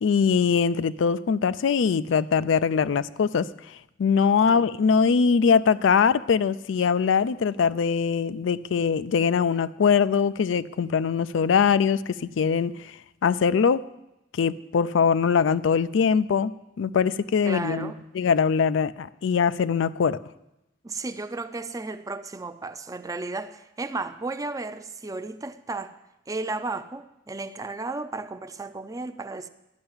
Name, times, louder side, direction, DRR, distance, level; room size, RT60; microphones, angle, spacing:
voice 1, 0.0-12.9 13.2-13.8 14.3-16.5 16.8-20.2, left 6 dB, 80° left, 0.4 m, -22 dB
voice 2, 17.4-18.0 20.8-26.0 26.3-29.5, right 3 dB, 20° right, 0.4 m, -34 dB
11.5 x 5.6 x 8.8 m
head